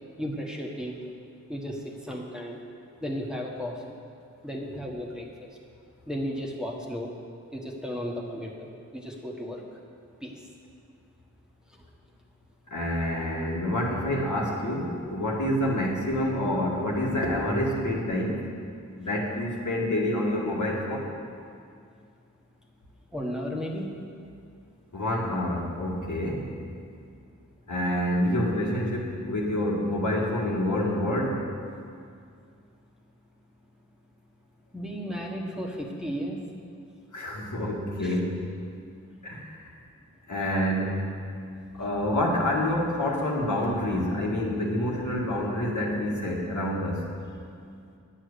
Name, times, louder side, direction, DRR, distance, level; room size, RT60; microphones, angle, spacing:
voice 1, 0.2-0.9 1.5-2.6 3.0-4.0 4.4-5.3 6.1-7.1 7.5-9.6 10.2-10.3 23.1-23.9 34.7-36.4 38.0-38.2, equal, ahead, -1 dB, 1.5 m, -34 dB
voice 2, 12.7-18.4 19.0-21.1 24.9-26.5 27.7-31.4 37.1-38.4 39.2-39.7 40.3-41.1 41.7-47.1, left 1 dB, 75° left, -3 dB, 1.8 m, -27 dB
9.8 x 7.6 x 6.8 m, 2.3 s
wide cardioid pair, 55°, 31 cm